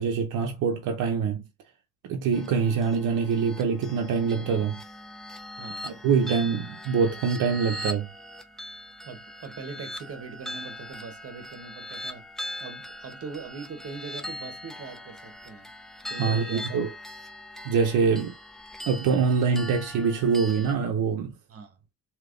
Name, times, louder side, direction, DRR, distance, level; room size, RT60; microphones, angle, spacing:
voice 1, 0.0-1.4 2.0-4.8 5.8-8.1 16.2-16.9 17.6-18.3 18.9-21.3, right 6 dB, 85° right, 0.7 m, -24 dB
sound 1, 2.3-20.7, left 1 dB, ahead, 0.6 m, -40 dB
voice 2, 5.6-5.9 9.0-12.3 12.6-15.7 16.1-16.8 18.0-18.2 21.5-21.8, right 4 dB, 50° right, 1.1 m, -41 dB
3.3 x 2.9 x 2.5 m
cardioid pair, 90°, 30 cm